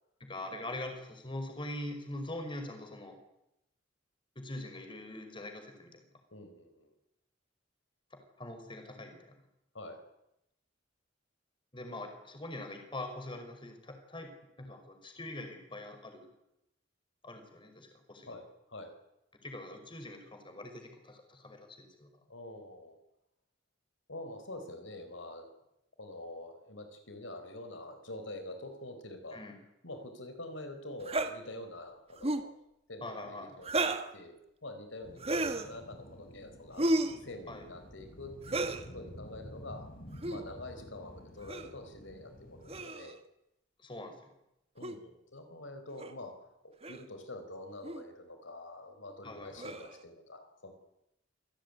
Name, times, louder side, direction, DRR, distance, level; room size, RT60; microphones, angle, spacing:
voice 1, 0.2-3.2 4.4-6.0 8.1-9.4 11.7-14.3 14.6-16.3 17.2-18.4 19.4-22.1 29.3-29.6 33.0-33.6 37.5-37.6 43.8-44.2 49.2-49.7, left 1 dB, 25° left, 5 dB, 5.4 m, -43 dB
voice 2, 6.3-6.9 9.7-10.0 18.3-18.9 22.3-23.0 24.1-25.5 26.0-29.4 29.8-32.6 32.9-34.3 34.6-36.8 37.2-39.9 40.3-43.2 44.7-46.3 46.6-50.7, left 1 dB, 80° left, 7 dB, 4.8 m, -46 dB
sound 1, 31.1-31.3 32.2-32.5 33.6-34.1 35.2-35.7 36.8-37.2 38.4-38.8 40.1-40.4 41.5-41.7 42.7-43.2 44.8-45.0 46.0-46.1 46.8-47.0 47.8-48.0 49.6-50.0, right 2 dB, 30° right, 1.7 m, -32 dB
sound 2, 35.0-42.9, equal, 50° left, 4.0 m, -51 dB
27.0 x 17.5 x 9.9 m, 0.86 s
head